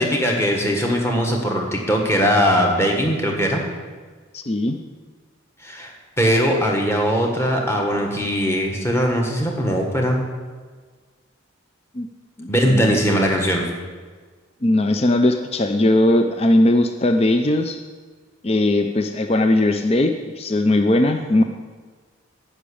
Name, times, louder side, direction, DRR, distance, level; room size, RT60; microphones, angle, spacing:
voice 1, 0.0-3.6 5.6-10.2 12.5-13.7, equal, 10° left, 0 dB, 1.5 m, -20 dB
voice 2, 4.3-4.8 11.9-12.1 12.4-13.0 14.6-17.8 18.4-21.4, left 1 dB, 30° left, 6 dB, 0.5 m, -19 dB
10.0 x 6.2 x 8.5 m, 1.5 s
head